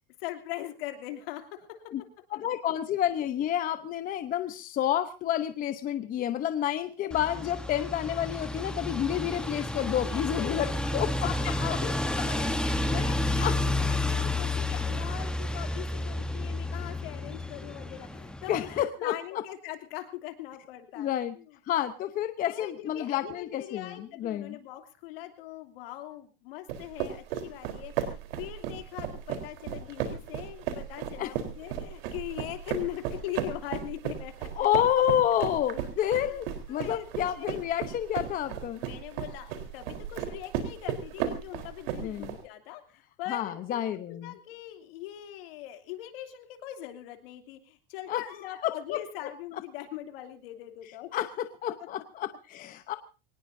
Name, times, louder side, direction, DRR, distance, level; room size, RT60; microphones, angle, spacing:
voice 1, 0.2-1.8 10.0-10.8 11.2-21.5 22.4-34.7 36.0-36.4 36.7-37.6 38.8-51.1 51.8-51.9, left 13 dB, 65° left, 6 dB, 2.9 m, -41 dB
voice 2, 2.3-11.3 13.4-13.6 18.5-19.4 21.0-21.3 21.7-24.6 31.2-31.3 34.6-38.8 42.0-42.4 43.3-44.3 48.1-48.2 48.6-49.0 51.1-52.9, left 11 dB, 25° left, 10 dB, 0.9 m, -29 dB
sound 1, 7.1-18.8, left 2 dB, 5° left, 1.1 m, -31 dB
sound 2, 26.7-42.4, right 9 dB, 65° right, 4.0 m, -35 dB
23.5 x 19.5 x 2.7 m, 0.32 s
supercardioid pair, 145°, 31 cm